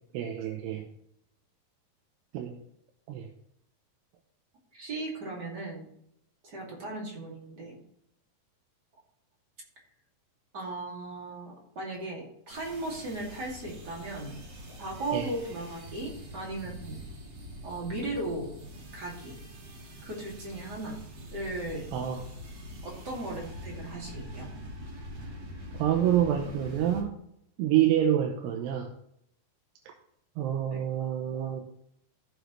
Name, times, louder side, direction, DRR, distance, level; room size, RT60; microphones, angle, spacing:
voice 1, 0.1-0.8 2.3-2.6 3.1-3.3 15.1-15.3 21.9-22.2 25.8-27.1 27.6-28.9 30.4-31.7, right 10 dB, 85° right, 3 dB, 2.9 m, -27 dB
voice 2, 4.7-5.8 6.4-7.8 10.5-14.4 14.7-17.0 17.6-18.5 18.9-19.4 20.0-21.0 21.3-21.9 22.8-24.5 30.7-30.8, right 2 dB, 30° right, -2 dB, 2.3 m, -37 dB
sound 1, 12.5-27.0, equal, 45° right, 2.5 m, -44 dB
14.5 x 7.1 x 3.2 m, 0.74 s
omnidirectional pair, 4.7 m